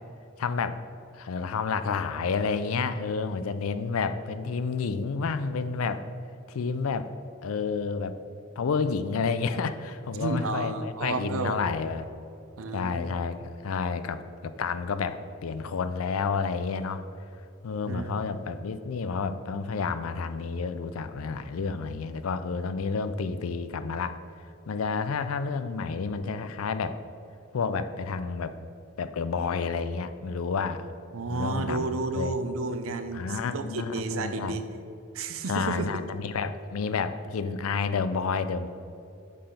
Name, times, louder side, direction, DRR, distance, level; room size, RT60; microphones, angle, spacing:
voice 1, 0.4-0.8 1.1-6.0 6.5-7.1 7.4-8.1 8.6-12.1 12.7-13.4 13.6-17.0 17.6-24.2 24.7-27.0 27.5-28.6 29.0-30.9 31.3-32.4 33.1-34.6 35.5-38.7, left 5 dB, 80° left, 11 dB, 0.4 m, -30 dB
voice 2, 10.1-11.6 12.6-13.0 17.9-18.1 31.1-34.7 35.1-35.9, right 3 dB, 70° right, 9 dB, 0.6 m, -31 dB
6.6 x 5.7 x 5.1 m, 2.6 s
head